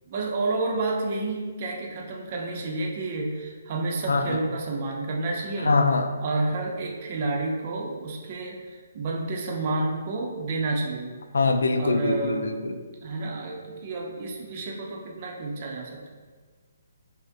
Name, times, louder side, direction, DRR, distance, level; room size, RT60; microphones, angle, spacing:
voice 1, 0.1-5.8 6.2-11.1 11.8-12.7 13.0-16.1, right 2 dB, 35° right, 0 dB, 0.6 m, -30 dB
voice 2, 4.1-4.4 5.7-6.1 11.3-12.8, left 3 dB, 85° left, 7 dB, 0.4 m, -23 dB
5.6 x 2.1 x 2.7 m, 1.5 s
hypercardioid pair, 165°, 0 cm